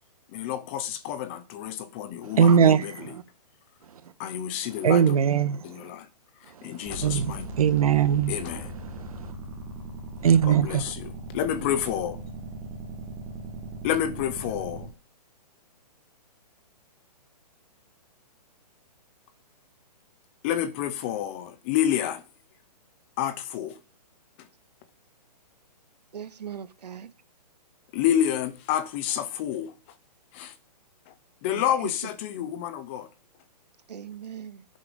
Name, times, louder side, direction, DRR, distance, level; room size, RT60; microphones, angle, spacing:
voice 1, 0.3-2.9 4.2-5.2 5.6-6.1 6.6-7.5 8.3-8.7 10.5-12.2 13.8-14.9 20.4-22.2 23.2-23.8 27.9-29.7 30.3-30.5 31.1-31.2 31.4-33.1, left 10 dB, 15° left, 0.6 m, -29 dB
voice 2, 2.2-3.2 4.8-5.8 6.6-8.4 8.9-9.3 10.2-10.9, right 8 dB, 60° right, 1.4 m, -22 dB
sound 1, 6.9-14.9, right 2 dB, 10° right, 2.6 m, -39 dB
voice 3, 26.1-27.1 31.5-31.9 33.9-34.7, right 8 dB, 75° right, 1.7 m, -39 dB
11.0 x 8.4 x 5.3 m
hypercardioid pair, 170°, 21 cm